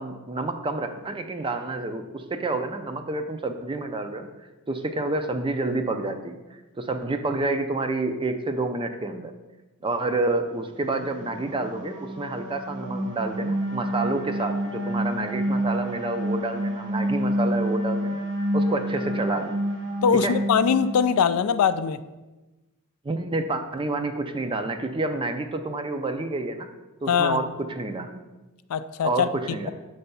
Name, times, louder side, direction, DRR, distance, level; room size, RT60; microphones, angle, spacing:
voice 1, 0.0-4.3 4.7-6.4 6.8-9.3 9.8-18.2 18.5-19.6 20.2-20.4 23.0-26.7 27.0-28.2 29.0-29.7, right 2 dB, 20° right, 7 dB, 0.4 m, -29 dB
sound 1, 10.9-21.4, equal, 55° right, 1.3 m, -28 dB
voice 2, 20.0-22.0 27.1-27.4 28.7-29.3, left 7 dB, 70° left, 13 dB, 0.3 m, -22 dB
6.9 x 3.3 x 5.4 m, 1.1 s
head